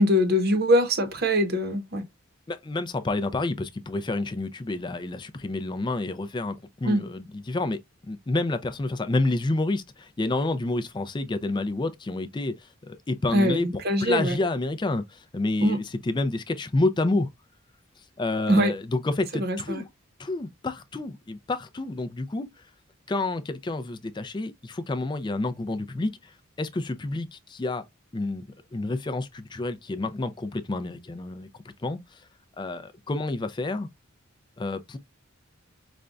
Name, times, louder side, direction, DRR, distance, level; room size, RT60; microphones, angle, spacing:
voice 1, 0.0-2.0 6.8-7.0 13.3-14.4 15.6-15.8 18.5-18.7 19.3-19.8, equal, 50° right, 0.8 m, -22 dB
voice 2, 2.5-7.8 8.1-13.7 14.0-17.3 18.2-19.9 20.2-22.5 23.1-26.3 26.6-27.8 28.1-28.5 28.7-31.5 31.8-32.2 32.6-33.9 34.6-35.0, left 2 dB, 20° left, 0.4 m, -29 dB
5.0 x 2.2 x 2.4 m
head